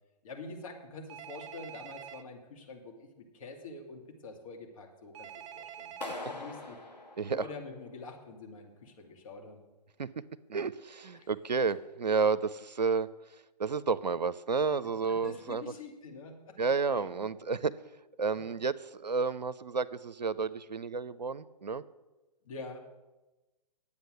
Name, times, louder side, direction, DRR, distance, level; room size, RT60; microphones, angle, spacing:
voice 1, 0.2-5.9 6.2-6.8 7.3-9.6 11.1-11.3 15.1-16.6 16.9-17.2 22.4-22.8, left 3 dB, 55° left, 2 dB, 2.4 m, -46 dB
Telephone, 1.1-2.2 5.1-6.2, right 9 dB, 20° right, 0.4 m, -46 dB
Clapping, 6.0-8.1, left 2 dB, 85° left, 2.0 m, -43 dB
voice 2, 10.5-13.1 13.6-15.7 16.6-17.7 18.2-21.8, right 5 dB, 85° right, 15 dB, 0.5 m, -31 dB
10.5 x 8.3 x 6.4 m, 1.1 s
figure-of-eight pair, 125°, 21 cm